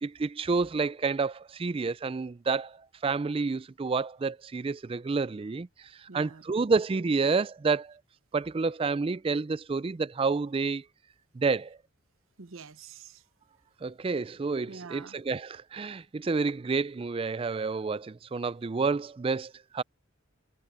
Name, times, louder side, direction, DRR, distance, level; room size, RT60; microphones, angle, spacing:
voice 1, 0.0-8.0 8.3-10.8 11.3-11.8 13.8-19.8, right 4 dB, 25° right, 0.3 m, -29 dB
voice 2, 6.1-6.4 12.4-13.2 14.7-15.2, right 5 dB, 75° right, 0.9 m, -46 dB
head